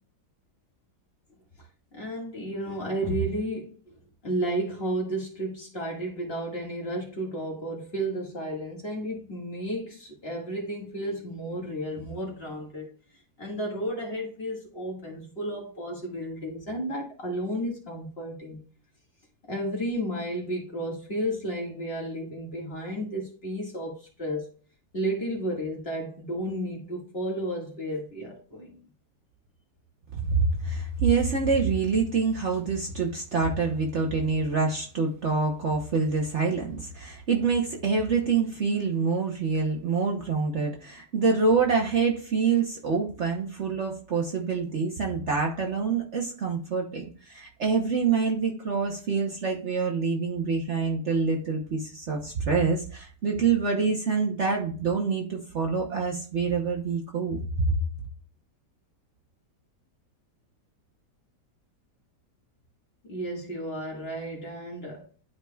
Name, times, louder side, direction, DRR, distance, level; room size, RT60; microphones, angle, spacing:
voice 1, 1.9-3.8 4.2-12.9 13.4-18.6 19.5-24.6 24.9-28.8 63.0-65.1, right 1 dB, 35° left, 2.0 m, -32 dB
voice 2, 30.1-57.7, right 5 dB, 50° right, 1.1 m, -26 dB
11.5 x 4.8 x 2.3 m
omnidirectional pair, 1.8 m